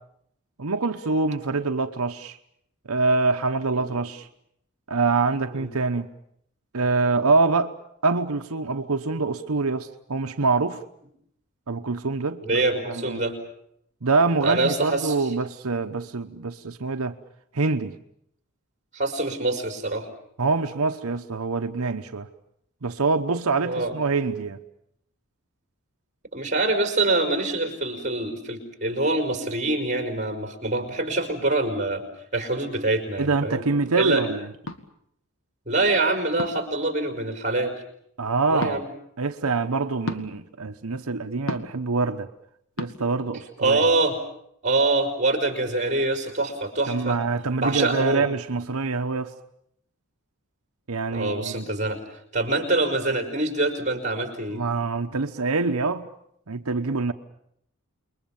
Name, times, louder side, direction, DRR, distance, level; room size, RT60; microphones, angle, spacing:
voice 1, 0.6-2.4 2.9-4.3 4.9-6.1 6.7-7.7 8.0-10.8 11.7-13.2 14.0-17.1 17.5-17.9 20.4-22.3 22.8-24.6 33.2-34.5 38.2-38.8 39.2-42.3 42.8-43.8 46.9-49.3 50.9-51.7 54.5-56.1 56.5-57.1, right 3 dB, 90° right, 1.0 m, -25 dB
voice 2, 12.4-13.4 14.4-15.1 18.9-20.1 23.6-24.0 26.3-32.0 32.3-33.6 33.9-34.3 35.7-37.7 38.5-38.9 43.6-44.2 44.6-47.2 47.6-48.2 51.1-52.0 52.3-54.6, right 2 dB, 35° right, 4.9 m, -25 dB
sound 1, 34.6-34.8 36.4-36.7 38.6-38.8 40.0-40.3 41.5-41.8 42.8-42.9, left 1 dB, 65° left, 1.8 m, -31 dB
28.5 x 22.0 x 7.2 m
head